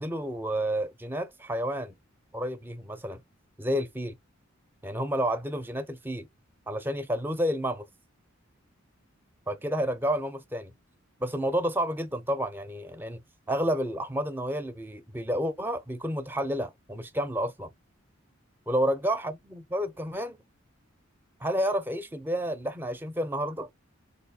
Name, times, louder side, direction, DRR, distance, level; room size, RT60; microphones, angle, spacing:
voice 1, 0.0-1.9 2.3-3.2 3.6-4.1 4.8-6.3 6.7-7.9 9.5-10.7 11.2-13.2 13.5-17.7 18.7-20.4 21.4-23.7, equal, 10° right, 0.5 m, -30 dB
4.0 x 2.6 x 2.7 m
head